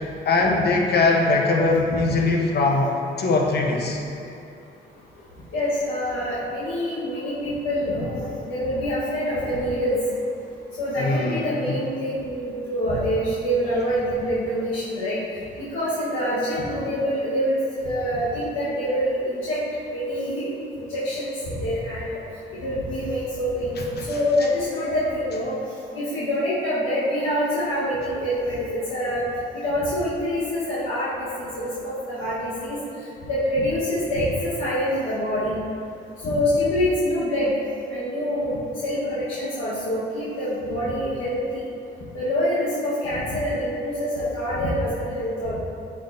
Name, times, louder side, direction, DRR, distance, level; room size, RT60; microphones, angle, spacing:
voice 1, 0.2-4.0 11.0-11.5 24.0-24.1, left 3 dB, 55° left, 0 dB, 1.0 m, -21 dB
voice 2, 5.5-10.0 10.8-15.2 15.6-19.6 19.9-20.5 20.8-22.1 22.6-25.6 25.9-29.2 29.6-32.8 33.3-35.6 36.2-37.5 37.9-38.6 38.8-41.6 42.1-45.6, equal, 85° left, -10 dB, 1.4 m, -25 dB
8.2 x 5.5 x 2.7 m, 2.6 s
cardioid pair, 90°, 20 cm